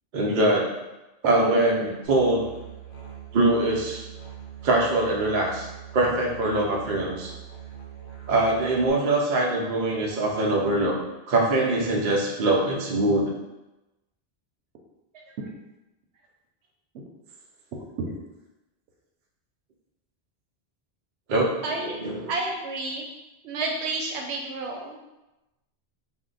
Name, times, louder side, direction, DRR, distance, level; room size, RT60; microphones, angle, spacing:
voice 1, 0.1-0.7 1.2-2.5 3.3-4.0 4.6-7.3 8.3-11.0 11.3-13.3 21.3-21.5 21.8-22.3, right 2 dB, 55° right, -1 dB, 0.7 m, -23 dB
Musical instrument, 2.0-8.9, right 9 dB, 60° left, 0.8 m, -42 dB
voice 2, 15.1-15.5 18.0-18.1 21.6-22.0 22.3-23.1 23.4-25.0, right 3 dB, 90° right, 1 dB, 0.9 m, -30 dB
2.7 x 2.1 x 3.8 m, 0.99 s
omnidirectional pair, 1.1 m